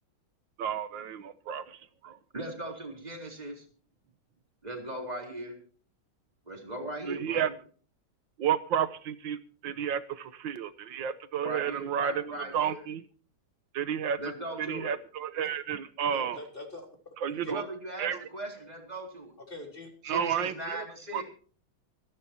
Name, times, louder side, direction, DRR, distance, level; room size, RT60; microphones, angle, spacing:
voice 1, 0.6-2.2 7.1-7.5 8.4-13.0 13.7-14.2 14.6-16.4 17.2-17.6 18.0-18.3 20.1-20.9 21.1-21.2, right 8 dB, 70° right, 14 dB, 1.6 m, -31 dB
voice 2, 2.3-3.6 4.6-5.6 6.5-7.5 11.4-12.8 14.2-14.9 17.5-19.3 20.1-21.2, right 2 dB, 20° right, 2 dB, 3.8 m, -38 dB
voice 3, 16.1-16.9 17.3-17.5 19.4-19.9, left 2 dB, 25° left, 2 dB, 4.1 m, -43 dB
26.0 x 10.5 x 2.8 m, 0.42 s
omnidirectional pair, 2.2 m